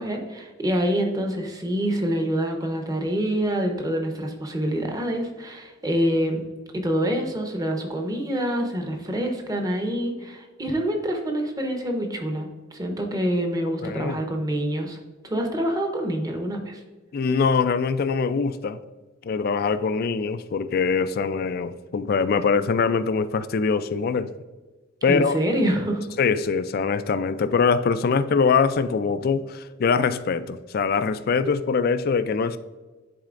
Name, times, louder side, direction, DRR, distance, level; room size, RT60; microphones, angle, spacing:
voice 1, 0.0-6.4 6.8-15.0 15.2-16.8 25.1-26.0, equal, 20° right, 3 dB, 0.9 m, -26 dB
voice 2, 13.8-14.2 17.1-18.8 19.2-24.3 25.0-25.4 26.2-32.6, left 5 dB, 50° left, 12 dB, 0.4 m, -23 dB
10.5 x 4.2 x 2.5 m, 1.2 s
head